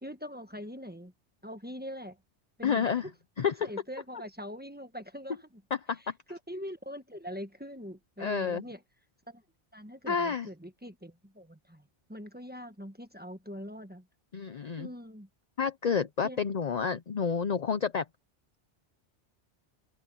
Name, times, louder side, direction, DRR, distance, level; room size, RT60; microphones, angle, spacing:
voice 1, 0.0-1.1 1.4-2.2 2.6-3.1 3.6-5.6 6.3-8.8 9.3-9.4 9.7-14.1 14.8-15.3 16.2-16.4, equal, 10° right, 1.2 m, -43 dB
voice 2, 2.6-3.1 3.4-3.7 5.7-6.1 8.2-8.6 10.1-10.5 14.3-14.9 15.6-18.1, left 6 dB, 45° left, 0.6 m, -29 dB
omnidirectional pair, 1.2 m